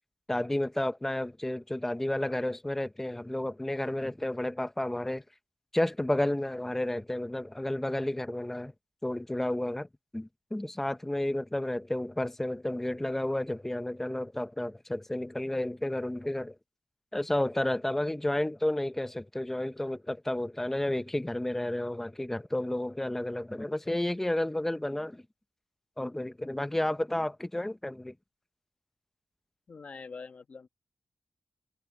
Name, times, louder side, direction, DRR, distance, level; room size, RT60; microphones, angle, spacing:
voice 1, 0.3-5.2 5.7-8.7 9.0-9.9 10.1-16.6 17.1-25.2 26.0-28.1, left 1 dB, 10° left, 0.7 m, -31 dB
voice 2, 29.7-30.7, left 4 dB, 50° left, 1.2 m, -44 dB
wide cardioid pair, 115°, 3 cm